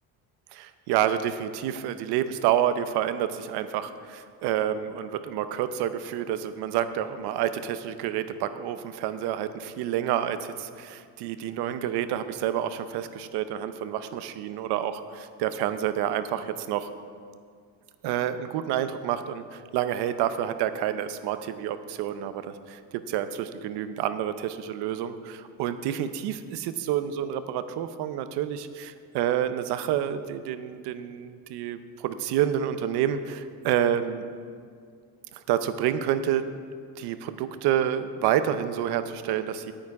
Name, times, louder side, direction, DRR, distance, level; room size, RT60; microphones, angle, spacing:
voice 1, 0.5-16.9 18.0-34.2 35.5-36.4 37.0-39.7, right 10 dB, 65° right, 11 dB, 0.8 m, -28 dB
9.9 x 8.8 x 4.8 m, 2.2 s
cardioid pair, 140°, 42 cm